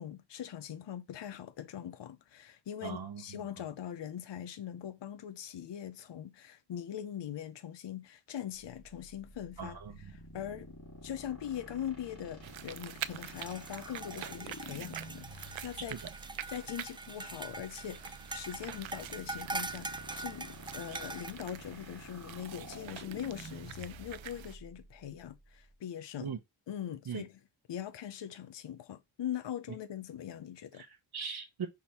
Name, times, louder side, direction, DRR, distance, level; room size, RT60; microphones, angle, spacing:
voice 1, 0.0-9.8 10.1-10.7 11.0-16.0 16.5-26.3 26.7-27.4 27.7-30.8, left 10 dB, 60° left, 0.7 m, -42 dB
voice 2, 2.8-3.4 9.6-9.9 15.9-16.0 26.2-26.4 27.1-27.2 30.8-31.7, right 6 dB, 50° right, 0.9 m, -40 dB
sound 1, 8.5-25.7, left 1 dB, 30° left, 2.9 m, -50 dB
sound 2, 12.4-24.6, right 12 dB, 70° right, 0.6 m, -47 dB
sound 3, 13.3-21.3, right 3 dB, 10° right, 0.3 m, -43 dB
6.1 x 3.7 x 4.2 m
wide cardioid pair, 105°, 49 cm